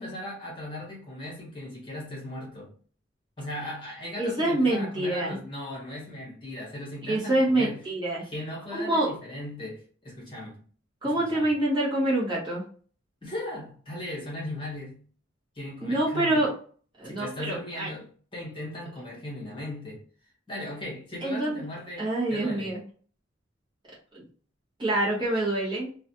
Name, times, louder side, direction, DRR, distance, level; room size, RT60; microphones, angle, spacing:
voice 1, 0.0-2.7 3.4-7.8 8.2-10.6 11.0-11.5 13.2-15.1 15.5-16.5 17.0-18.1 18.3-20.0 20.5-22.7, left 1 dB, 25° left, -5 dB, 1.1 m, -38 dB
voice 2, 4.2-5.4 7.1-8.2 8.7-9.1 11.0-12.6 15.8-16.5 17.0-17.9 21.2-21.6 22.0-22.8 24.1-24.2 24.8-25.9, right 1 dB, 25° right, -6 dB, 0.8 m, -26 dB
2.4 x 2.2 x 2.8 m, 0.43 s
head